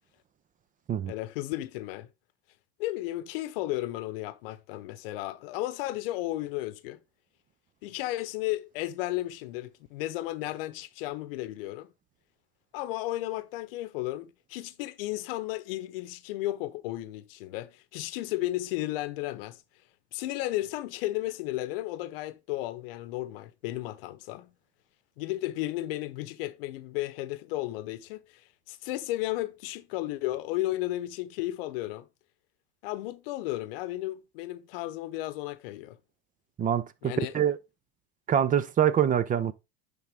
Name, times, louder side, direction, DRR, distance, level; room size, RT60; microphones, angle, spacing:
voice 1, 1.1-2.1 2.8-7.0 7.8-11.9 12.7-19.6 20.1-24.5 25.2-32.1 32.8-36.0 37.0-37.4, left 16 dB, 75° left, 0.8 m, -34 dB
voice 2, 36.6-37.6 38.3-39.5, right 9 dB, 25° right, 0.6 m, -25 dB
9.9 x 3.8 x 3.5 m
supercardioid pair, 105°, 29 cm